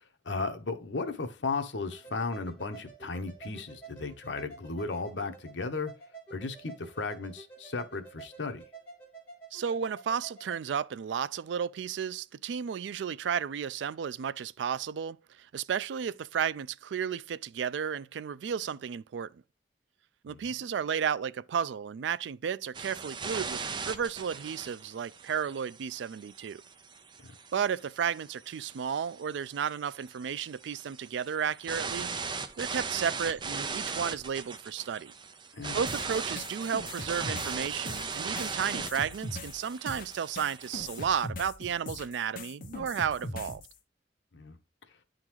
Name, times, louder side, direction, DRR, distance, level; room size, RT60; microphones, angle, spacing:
voice 1, 0.2-5.9 6.3-8.6 20.3-20.4 27.2-27.3 35.5-35.8 44.3-44.6, left 3 dB, 85° left, 0.9 m, -35 dB
sound 1, 1.9-10.6, right 5 dB, 10° left, 3.4 m, -50 dB
voice 2, 9.5-19.4 20.2-26.6 27.5-32.1 32.6-35.1 35.7-43.6, right 7 dB, 85° right, 0.3 m, -33 dB
sound 2, 22.7-41.2, right 5 dB, 25° right, 0.5 m, -39 dB
sound 3, 35.9-43.7, left 2 dB, 50° left, 1.0 m, -41 dB
9.6 x 3.8 x 3.0 m
head